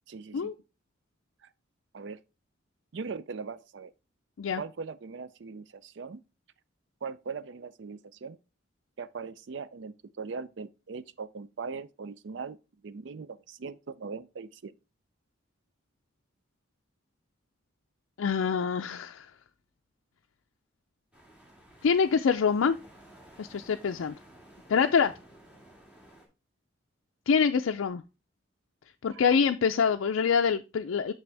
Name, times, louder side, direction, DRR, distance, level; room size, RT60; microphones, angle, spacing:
voice 1, 0.1-0.5 1.9-2.2 2.9-3.9 4.5-6.2 7.0-8.4 9.0-12.6 12.8-14.7 29.1-29.2, right 5 dB, 60° right, 0.4 m, -40 dB
voice 2, 18.2-19.3 21.8-22.8 23.4-24.1 24.7-25.1 27.3-28.0 29.0-31.1, left 6 dB, 80° left, 0.4 m, -25 dB
sound 1, 21.1-26.3, right 1 dB, 5° right, 1.9 m, -54 dB
6.8 x 6.1 x 3.3 m
head